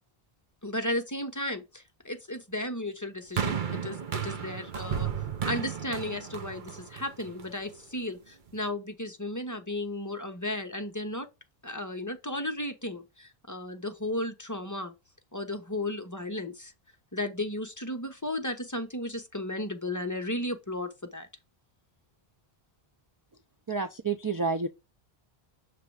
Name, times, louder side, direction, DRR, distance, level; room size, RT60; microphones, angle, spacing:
voice 1, 0.6-5.1 5.4-11.3 11.6-14.9 15.3-16.7 17.1-21.3, left 1 dB, 20° left, 0.8 m, -34 dB
sound 1, 3.4-7.7 8.5-8.6, right 8 dB, 55° right, 1.0 m, -33 dB
voice 2, 23.7-24.7, right 4 dB, 35° right, 0.3 m, -29 dB
6.6 x 3.3 x 4.6 m
omnidirectional pair, 1.0 m